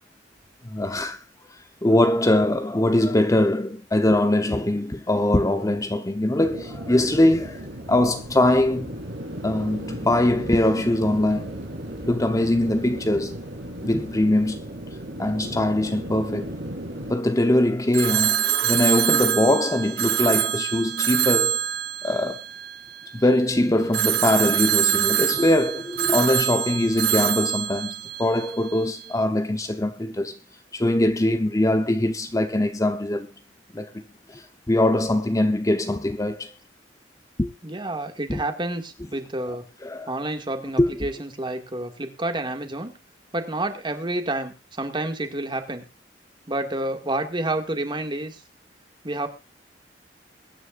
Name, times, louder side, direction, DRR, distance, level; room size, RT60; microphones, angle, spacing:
voice 1, 0.6-1.2 1.8-7.6 7.9-8.9 9.4-11.5 12.0-13.4 13.8-14.6 15.2-16.5 17.1-21.6 22.0-22.4 23.1-27.9 28.2-30.3 30.7-33.3 33.7-33.9 34.3-34.4 34.7-36.5 37.4-37.5 38.3-38.4 39.8-40.1 40.8-40.9, left 1 dB, 20° left, 0.9 m, -22 dB
sound 1, 6.4-17.1, right 1 dB, 85° right, 3.9 m, -36 dB
Telephone, 17.9-23.2 23.9-28.8, right 11 dB, 60° right, 0.9 m, -25 dB
voice 2, 37.6-39.7 40.1-42.9 43.3-45.8 46.5-48.4 49.0-49.3, right 2 dB, 25° right, 2.0 m, -29 dB
22.5 x 9.9 x 2.5 m
head